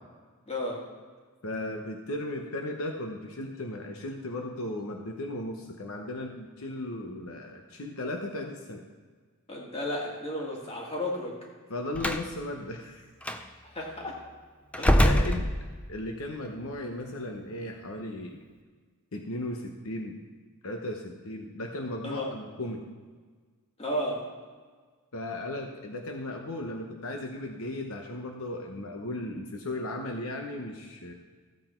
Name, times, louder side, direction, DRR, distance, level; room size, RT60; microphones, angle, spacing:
voice 1, 0.5-0.8 9.5-11.4 13.6-14.2 14.8-15.1 22.0-22.3 23.8-24.3, left 1 dB, 25° left, -2 dB, 2.1 m, -33 dB
voice 2, 1.4-8.8 11.7-13.1 14.9-15.5 15.9-18.4 19.1-20.2 20.6-22.8 25.1-31.1, left 1 dB, 65° left, 3 dB, 0.9 m, -36 dB
Slam, 11.9-12.3 13.2-13.4 14.7-16.0, equal, 5° left, 0.5 m, -24 dB
14.5 x 7.8 x 4.5 m, 1.5 s
head